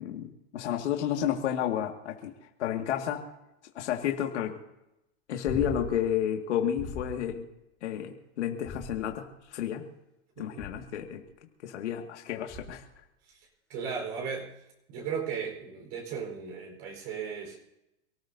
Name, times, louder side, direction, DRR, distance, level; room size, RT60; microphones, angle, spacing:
voice 1, 0.0-2.3 2.6-3.3 3.7-4.6 5.3-7.5 7.8-9.9 10.4-11.2 11.6-12.9, left 10 dB, 80° left, 2 dB, 2.2 m, -31 dB
sound 1, 5.5-6.1 6.8-7.3 8.6-9.4 10.6-11.0 12.5-12.9 15.3-15.4, left 2 dB, 5° left, 3.3 m, -40 dB
voice 2, 10.4-10.7 13.3-13.4 13.7-14.5 14.9-17.6, right 6 dB, 45° right, 1 dB, 4.7 m, -36 dB
27.5 x 14.0 x 2.8 m, 0.89 s
supercardioid pair, 150°, 34 cm